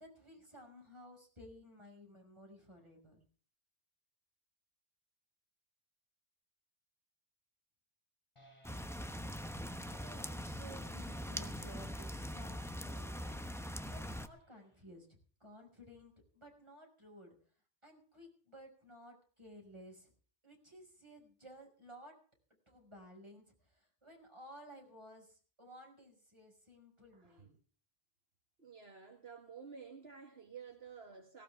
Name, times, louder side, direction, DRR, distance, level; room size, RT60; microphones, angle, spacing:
voice 1, 0.0-3.2 9.9-17.4 17.8-20.1 20.4-22.2 22.7-27.6, equal, 25° right, 6.1 m, -56 dB
sound 1, 8.4-9.3 9.8-10.5 11.3-12.1 12.8-13.5 14.3-15.1, equal, 25° left, 5.0 m, -67 dB
sound 2, 8.6-14.3, equal, 5° left, 0.8 m, -42 dB
voice 2, 28.6-31.4, right 6 dB, 60° right, 1.9 m, -51 dB
18.0 x 18.0 x 3.6 m
omnidirectional pair, 1.2 m